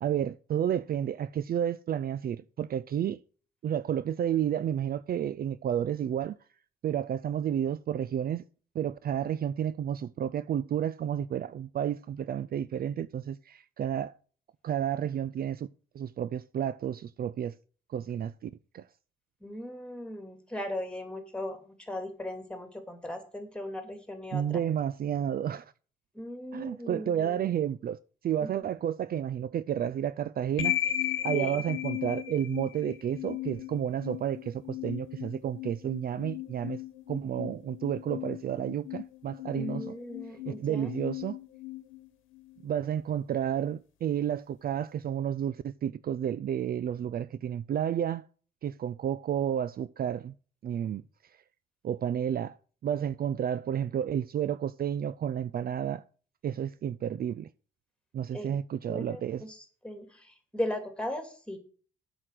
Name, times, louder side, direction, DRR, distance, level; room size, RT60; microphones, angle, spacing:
voice 1, 0.0-3.2 3.6-6.4 6.8-8.4 8.7-14.1 14.6-15.7 15.9-17.5 17.9-18.9 24.3-25.7 26.5-28.0 28.2-30.8 31.2-36.8 37.1-39.9 40.5-41.4 42.6-48.2 48.6-50.3 50.6-51.0 51.8-52.6 52.8-56.0 56.4-57.5 58.1-59.4, right 9 dB, 50° right, 0.5 m, -31 dB
voice 2, 19.4-24.6 26.1-27.5 28.4-28.7 31.3-31.6 39.6-40.9 58.3-58.5 58.9-61.6, left 1 dB, 5° left, 2.7 m, -38 dB
sound 1, 30.6-42.6, left 13 dB, 80° left, 1.2 m, -36 dB
7.9 x 6.2 x 7.6 m
cardioid pair, 90°, 20 cm